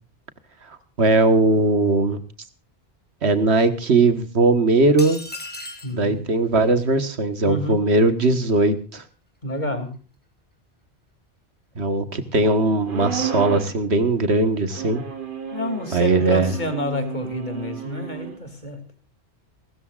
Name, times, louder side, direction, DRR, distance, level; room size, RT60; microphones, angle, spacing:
voice 1, 1.0-2.2 3.2-5.2 5.9-9.0 11.8-15.0 15.9-16.6, right 3 dB, 80° right, 10 dB, 1.8 m, -19 dB
sound 1, 5.0-6.0, left 1 dB, 10° left, 2.9 m, -35 dB
voice 2, 5.8-6.2 7.4-7.8 9.4-9.9 15.5-18.8, left 1 dB, 45° left, 7 dB, 3.0 m, -29 dB
sound 2, 12.9-13.8 14.7-18.4, right 7 dB, 50° right, 1.5 m, -32 dB
29.0 x 13.5 x 2.5 m, 0.34 s
omnidirectional pair, 1.1 m